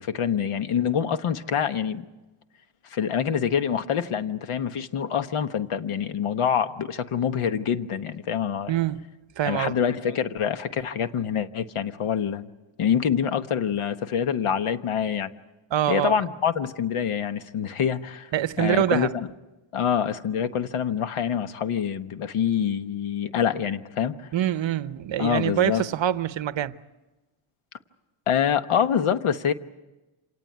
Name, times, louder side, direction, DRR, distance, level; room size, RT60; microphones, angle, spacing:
voice 1, 0.0-2.1 2.8-8.7 9.4-12.5 12.8-15.3 15.9-18.3 18.6-19.3 19.7-24.3 25.2-25.9 28.3-29.5, left 8 dB, 90° left, 1.2 m, -26 dB
voice 2, 8.7-9.0 9.4-9.7 15.7-16.1 18.3-19.1 24.3-26.8, right 11 dB, 65° right, 0.8 m, -25 dB
27.0 x 18.0 x 9.4 m
wide cardioid pair, 165°, 49 cm